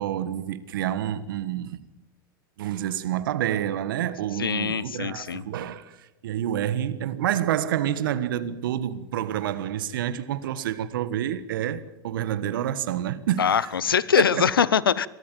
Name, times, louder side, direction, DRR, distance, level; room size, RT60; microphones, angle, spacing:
voice 1, 0.0-1.8 2.6-13.7 14.2-14.5, right 11 dB, 70° right, 1.4 m, -28 dB
voice 2, 4.4-5.4 13.4-15.1, left 7 dB, 90° left, 0.7 m, -22 dB
22.5 x 13.5 x 9.2 m
hypercardioid pair, 90°, 12 cm